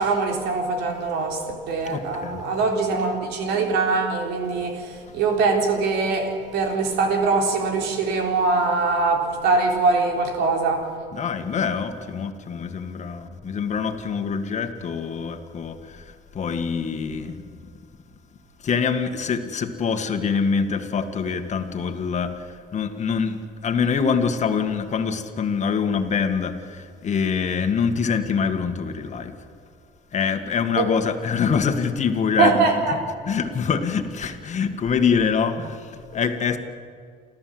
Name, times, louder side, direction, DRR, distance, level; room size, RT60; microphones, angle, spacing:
voice 1, 0.0-10.9 30.8-30.9 32.4-33.0, right 4 dB, 85° right, 3 dB, 3.5 m, -22 dB
voice 2, 1.9-2.4 11.1-17.4 18.6-29.3 30.1-32.7 33.3-36.6, left 6 dB, 45° left, 7 dB, 2.0 m, -25 dB
29.0 x 13.5 x 7.9 m, 2.1 s
cardioid pair, 110°, 17 cm